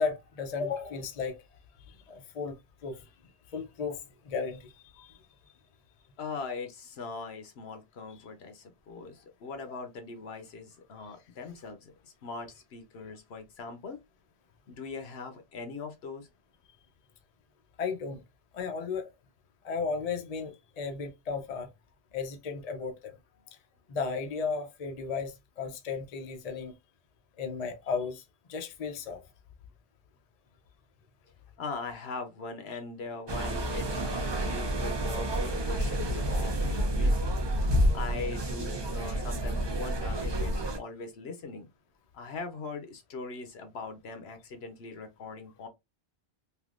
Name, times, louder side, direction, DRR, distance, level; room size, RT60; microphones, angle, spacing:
voice 1, 0.0-1.4 1.9-2.6 2.8-3.1 3.5-5.2 11.0-11.1 17.8-18.2 18.5-19.1 19.6-21.7 22.1-23.1 23.9-26.7 27.4-28.2 28.5-29.2, left 5 dB, 45° left, 0.6 m, -34 dB
voice 2, 6.2-14.0 14.7-16.3 31.6-37.3 37.9-41.7 42.1-45.7, left 4 dB, 70° left, 1.0 m, -41 dB
sound 1, 33.3-40.8, right 1 dB, 30° right, 0.5 m, -29 dB
3.4 x 2.6 x 2.4 m
omnidirectional pair, 1.1 m